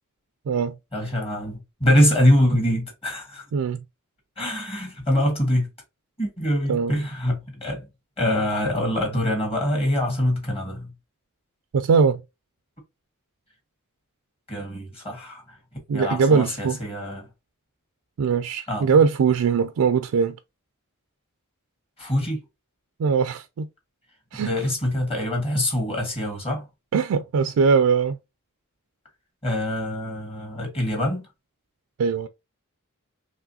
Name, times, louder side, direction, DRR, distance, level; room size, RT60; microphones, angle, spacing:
voice 1, 0.9-3.4 4.4-5.7 6.2-7.9 8.2-10.9 14.5-15.6 15.9-17.3 18.7-19.0 22.0-22.4 24.3-26.6 29.4-31.2, left 1 dB, 25° left, 1.6 m, -24 dB
voice 2, 11.7-12.2 15.9-16.8 18.2-20.4 23.0-23.7 24.3-24.5 26.9-28.2 32.0-32.3, right 5 dB, 75° right, 0.4 m, -21 dB
4.7 x 3.1 x 2.6 m
head